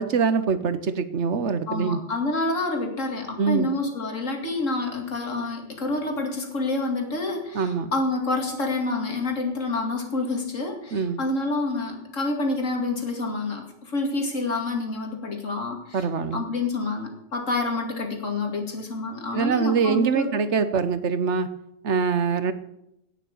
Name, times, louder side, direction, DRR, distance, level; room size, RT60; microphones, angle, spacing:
voice 1, 0.0-2.0 3.4-3.7 7.5-7.9 10.9-11.2 15.9-16.4 19.3-21.5 21.8-22.5, right 5 dB, 65° right, 12 dB, 1.2 m, -24 dB
voice 2, 1.7-16.1 16.3-20.4, left 2 dB, 85° left, 3 dB, 2.7 m, -28 dB
17.5 x 6.7 x 6.9 m, 0.79 s
omnidirectional pair, 1.3 m